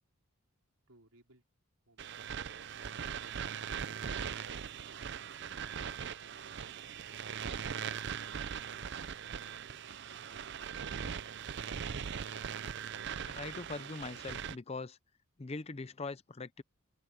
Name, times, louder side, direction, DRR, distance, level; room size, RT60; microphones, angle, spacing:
voice 1, 0.9-1.4 1.9-2.3 8.1-11.4, right 2 dB, 75° right, 4.7 m, -65 dB
sound 1, 2.0-14.6, right 7 dB, 50° right, 0.5 m, -40 dB
voice 2, 13.1-15.0 15.4-16.6, left 3 dB, 25° left, 0.5 m, -42 dB
open air
head